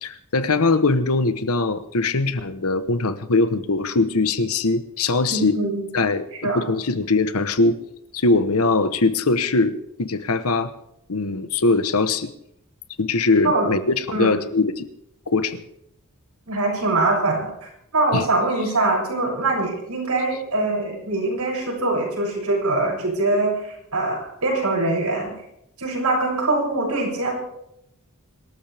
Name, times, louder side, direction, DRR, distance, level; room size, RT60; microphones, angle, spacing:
voice 1, 0.0-5.6 5.9-7.8 8.1-10.7 11.1-12.3 13.0-14.8 15.3-15.6 18.1-18.2, left 3 dB, 75° left, 11 dB, 1.2 m, -21 dB
voice 2, 5.3-5.8 6.4-6.6 13.4-13.7 14.1-14.3 16.5-25.3 25.8-27.3, right 2 dB, 90° right, -2 dB, 7.4 m, -23 dB
25.5 x 13.5 x 3.5 m, 0.78 s
head